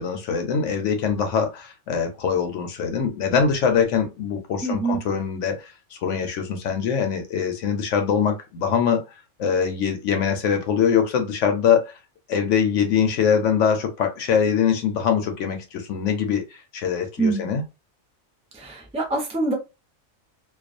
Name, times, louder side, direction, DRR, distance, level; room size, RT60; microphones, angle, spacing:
voice 1, 0.0-9.0 9.4-11.9 12.3-17.6, left 7 dB, 70° left, 0.8 m, -23 dB
voice 2, 4.6-5.0 17.2-17.5 18.5-19.5, right 3 dB, 10° right, 0.4 m, -25 dB
2.3 x 2.3 x 2.5 m
omnidirectional pair, 1.4 m